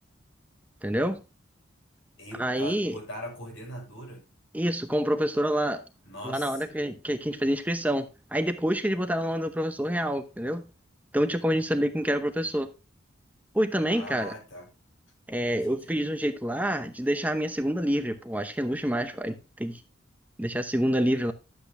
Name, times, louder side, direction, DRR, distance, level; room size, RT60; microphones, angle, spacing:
voice 1, 0.8-1.2 2.4-2.9 4.5-5.8 6.2-10.6 11.1-12.7 13.5-14.3 15.3-19.8 20.4-21.3, equal, 10° right, 0.8 m, -27 dB
voice 2, 2.2-4.2 6.0-6.8 13.9-14.7 15.5-16.1, equal, 80° left, 5.6 m, -41 dB
12.0 x 8.3 x 2.6 m
head